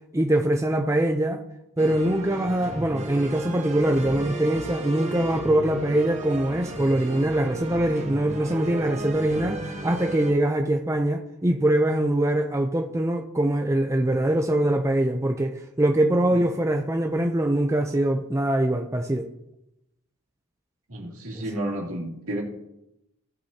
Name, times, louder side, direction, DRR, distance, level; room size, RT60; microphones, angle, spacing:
voice 1, 0.1-1.4 1.8-19.3 21.3-21.4, right 1 dB, 15° right, 0.5 m, -23 dB
sound 1, 1.8-10.3, right 2 dB, 30° right, 1.2 m, -34 dB
voice 2, 20.9-22.4, right 1 dB, 70° right, 2.6 m, -31 dB
17.0 x 6.3 x 2.8 m
head